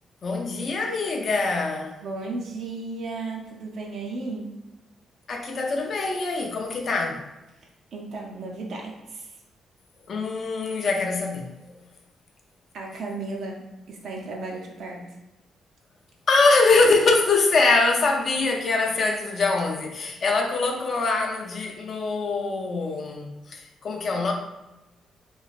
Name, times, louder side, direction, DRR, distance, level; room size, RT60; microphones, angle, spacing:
voice 1, 0.2-2.0 5.3-7.3 10.1-11.7 16.3-24.3, left 3 dB, 40° left, 1 dB, 0.4 m, -23 dB
voice 2, 2.0-4.6 7.9-9.4 12.7-15.2, right 3 dB, 60° right, -1 dB, 0.4 m, -34 dB
3.0 x 2.4 x 2.4 m, 0.98 s
cardioid pair, 170°, 0 cm